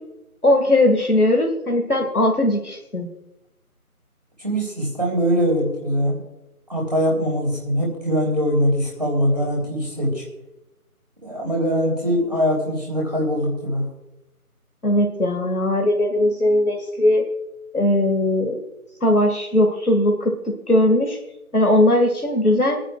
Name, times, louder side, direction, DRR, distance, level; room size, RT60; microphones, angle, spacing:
voice 1, 0.4-3.1 14.8-17.2 17.7-18.6 19.0-21.2 21.5-22.8, left 1 dB, 75° left, 2 dB, 2.1 m, -19 dB
voice 2, 4.4-6.2 6.7-10.2 11.2-13.9, equal, 30° right, -3 dB, 3.4 m, -22 dB
24.5 x 10.0 x 2.4 m, 0.92 s
figure-of-eight pair, 175°, 44 cm